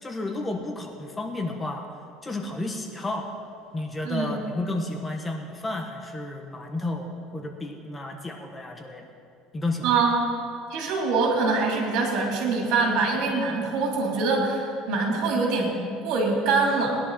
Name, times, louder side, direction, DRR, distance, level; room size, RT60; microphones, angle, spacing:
voice 1, 0.0-1.9 2.2-3.3 3.7-9.1 9.5-10.0, left 2 dB, 15° left, 3 dB, 1.2 m, -32 dB
voice 2, 4.1-4.4 9.8-10.3 10.7-17.0, right 3 dB, 65° right, -1 dB, 3.7 m, -24 dB
20.0 x 10.5 x 4.3 m, 2.4 s
cardioid pair, 140°, 0 cm